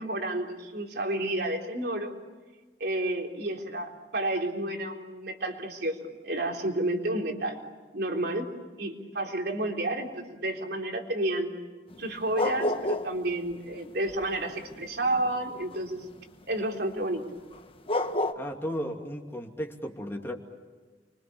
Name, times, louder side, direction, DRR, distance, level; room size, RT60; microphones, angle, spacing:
voice 1, 0.0-2.1 2.8-7.6 7.9-8.5 8.8-11.5 12.0-16.0 16.5-17.2, right 1 dB, 60° right, 2 dB, 3.9 m, -31 dB
sound 1, 11.9-13.2 13.5-15.9 17.5-17.6 17.9-18.3, left 1 dB, 30° left, 1.3 m, -29 dB
voice 2, 18.3-20.3, equal, 15° left, 1 dB, 2.6 m, -34 dB
30.0 x 24.5 x 7.0 m, 1.3 s
head